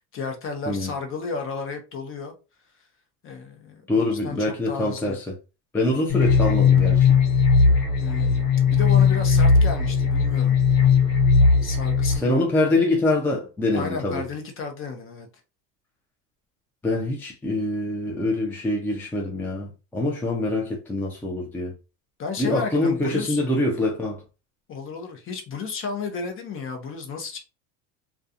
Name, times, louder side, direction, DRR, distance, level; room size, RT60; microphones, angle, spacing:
voice 1, 0.1-2.3 3.2-5.2 8.0-10.6 11.6-12.9 13.7-15.3 22.2-23.4 24.7-27.4, left 4 dB, 35° left, 0.8 m, -33 dB
voice 2, 3.9-5.3 5.7-7.1 12.1-14.2 16.8-21.7 22.4-24.2, left 2 dB, 5° left, 0.4 m, -24 dB
sound 1, 6.1-12.2, left 5 dB, 80° left, 1.0 m, -18 dB
2.3 x 2.3 x 2.6 m
supercardioid pair, 115°, 39 cm